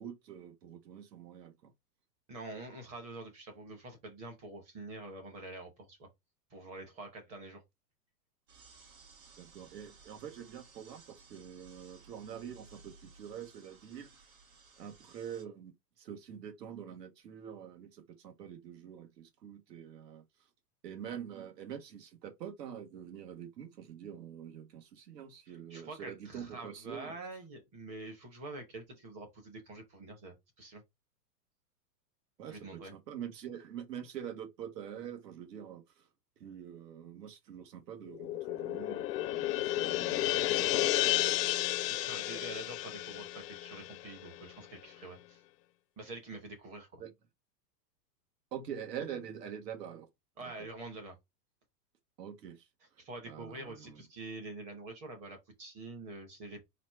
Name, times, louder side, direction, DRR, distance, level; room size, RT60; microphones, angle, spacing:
voice 1, 0.0-1.7 9.4-14.1 14.8-20.2 20.8-27.1 32.4-36.1 36.4-41.3 47.0-47.1 48.5-50.1 50.4-50.5 52.2-52.7 53.3-54.0, right 9 dB, 80° right, 1.5 m, -45 dB
voice 2, 2.3-6.1 6.5-7.6 25.5-30.8 32.5-32.9 41.6-45.4 46.0-47.0 50.4-51.1 53.0-56.7, right 2 dB, 15° right, 0.7 m, -46 dB
sound 1, 8.5-15.5, right 4 dB, 60° right, 2.3 m, -58 dB
sound 2, 38.1-44.7, left 15 dB, 80° left, 0.6 m, -32 dB
4.2 x 2.6 x 4.3 m
supercardioid pair, 170°, 49 cm